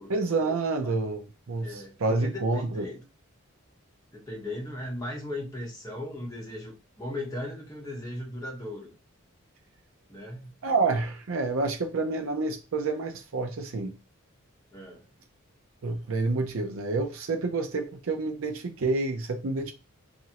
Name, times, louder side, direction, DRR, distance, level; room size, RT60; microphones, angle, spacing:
voice 1, 0.1-2.9 10.6-14.0 15.8-19.7, right 3 dB, 70° right, 0.5 m, -28 dB
voice 2, 1.6-3.0 4.1-8.9 10.1-10.5 14.7-15.1, left 1 dB, 15° left, 0.9 m, -37 dB
3.0 x 2.5 x 2.8 m
head